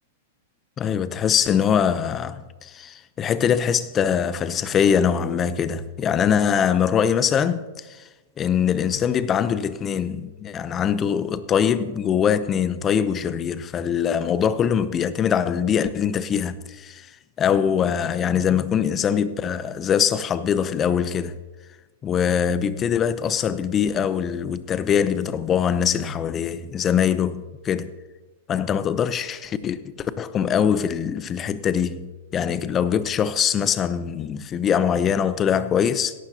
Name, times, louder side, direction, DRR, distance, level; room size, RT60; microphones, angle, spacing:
voice 1, 0.8-7.7 8.4-17.1 17.4-21.4 22.0-27.9 28.5-36.1, left 8 dB, 25° left, 0.6 m, -23 dB
17.0 x 11.0 x 2.9 m
hypercardioid pair, 130°, 0 cm